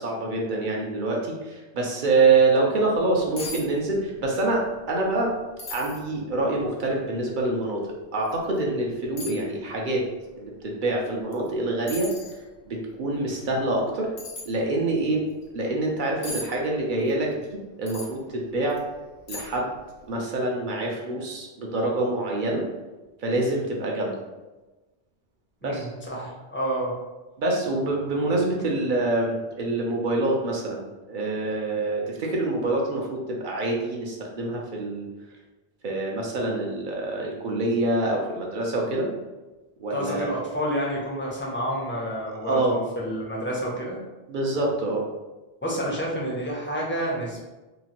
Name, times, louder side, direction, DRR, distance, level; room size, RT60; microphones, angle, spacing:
voice 1, 0.0-5.3 5.7-10.0 10.4-12.1 12.6-14.1 14.5-15.2 15.5-18.8 19.3-19.7 20.1-22.6 23.2-24.1 25.6-25.9 27.4-35.1 35.8-39.1 39.8-40.3 42.4-42.8 44.3-45.0, right 2 dB, 60° right, -1 dB, 0.6 m, -26 dB
sound 1, 3.0-3.1 3.4-3.7 3.9-4.5 4.8-4.9 5.6-6.0 6.7-6.8 8.2-8.4 9.2-9.4 11.3-11.5 11.9-12.4 14.2-14.5 16.2-16.5 17.9-18.1 18.7-18.8 19.3-19.7 20.0-20.1, left 2 dB, 85° left, 0.9 m, -37 dB
voice 2, 25.6-26.9 39.9-44.0 45.6-47.4, equal, 15° left, -4 dB, 0.4 m, -29 dB
2.9 x 2.4 x 2.8 m, 1.1 s
omnidirectional pair, 1.1 m